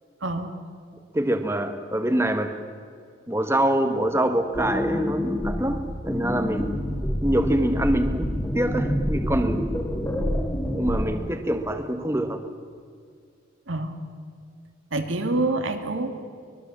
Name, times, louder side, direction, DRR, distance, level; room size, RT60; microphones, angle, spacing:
voice 1, 0.2-0.5 13.7-14.0 14.9-16.1, right 2 dB, 90° right, 5 dB, 2.4 m, -26 dB
voice 2, 1.1-2.5 3.3-6.9 7.2-9.7 10.3-10.4 10.7-12.4, right 1 dB, 15° right, 6 dB, 1.3 m, -25 dB
sound 1, 4.1-11.2, equal, 15° left, 2.3 m, -27 dB
24.0 x 21.0 x 7.4 m, 2.2 s
head